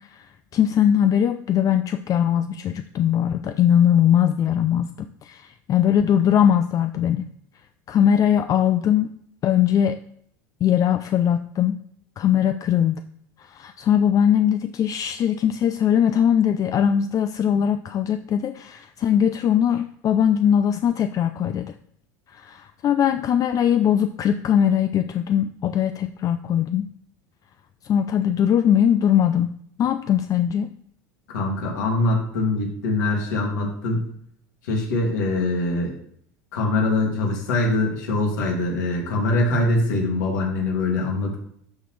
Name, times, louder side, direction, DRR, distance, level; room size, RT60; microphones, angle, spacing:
voice 1, 0.5-7.3 7.9-9.1 9.4-10.0 10.6-11.8 12.2-13.0 13.4-21.8 22.3-26.9 27.9-30.7, left 9 dB, 40° left, 9 dB, 0.4 m, -20 dB
voice 2, 31.3-34.1 34.7-35.9 36.5-41.4, left 2 dB, 85° left, -1 dB, 2.4 m, -23 dB
12.0 x 4.1 x 3.2 m, 0.65 s
supercardioid pair, 100°, 9 cm